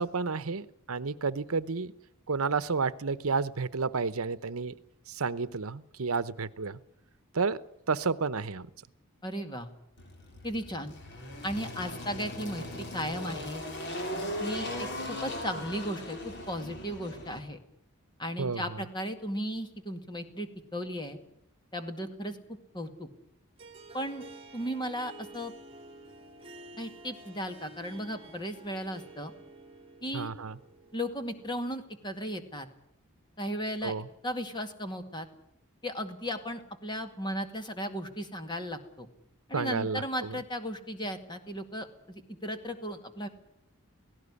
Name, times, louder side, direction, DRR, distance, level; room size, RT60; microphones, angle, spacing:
voice 1, 0.0-1.9 2.3-4.7 5.1-6.8 7.3-7.6 7.9-8.7 18.4-18.8 30.1-30.6 33.8-34.1 39.5-40.4, right 4 dB, 75° right, 16 dB, 0.9 m, -31 dB
voice 2, 9.2-9.7 10.4-10.9 11.4-13.6 14.4-17.6 18.2-21.2 21.7-22.4 22.7-23.1 23.9-24.2 24.5-25.5 26.8-29.3 30.0-30.3 30.9-32.7 33.4-33.9 34.2-35.3 35.8-39.1 39.5-43.3, equal, 20° left, 7 dB, 2.0 m, -36 dB
Engine, 10.0-17.4, left 1 dB, 50° left, 4.3 m, -38 dB
Harp, 23.6-32.0, right 2 dB, 25° right, 3.9 m, -51 dB
17.5 x 17.0 x 9.8 m, 0.78 s
head